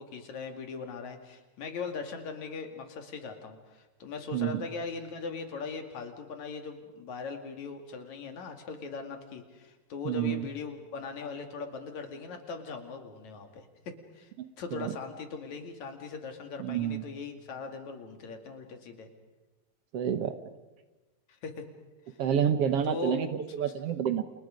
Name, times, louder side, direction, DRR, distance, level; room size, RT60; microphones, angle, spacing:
voice 1, 0.0-19.1 21.4-21.7 22.1-22.2 22.8-23.2, left 5 dB, 75° left, 5 dB, 3.7 m, -40 dB
voice 2, 4.3-4.6 10.1-10.5 14.7-15.0 16.6-17.0 19.9-20.4 22.2-24.2, right 9 dB, 60° right, 10 dB, 1.9 m, -29 dB
30.0 x 29.0 x 5.2 m, 1.1 s
omnidirectional pair, 3.3 m